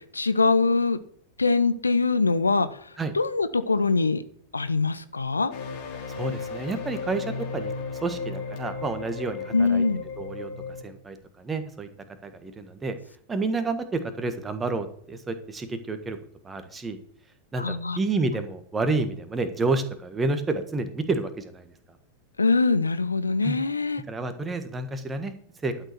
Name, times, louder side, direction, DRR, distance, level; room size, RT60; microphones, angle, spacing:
voice 1, 0.1-1.0 1.4-2.7 3.1-4.2 4.5-5.5 9.5-10.0 17.6-18.0 22.4-24.0, left 3 dB, 80° left, 13 dB, 0.7 m, -23 dB
sound 1, 5.5-10.8, left 4 dB, 45° left, 3.2 m, -35 dB
voice 2, 6.1-7.2 7.5-9.8 10.2-10.5 10.8-11.9 12.2-12.9 13.3-16.2 16.4-17.0 17.5-21.7 23.4-23.6 24.1-25.4 25.6-25.7, right 3 dB, 15° right, 9 dB, 1.5 m, -29 dB
12.0 x 6.6 x 6.1 m, 0.63 s
figure-of-eight pair, 90°, 0 cm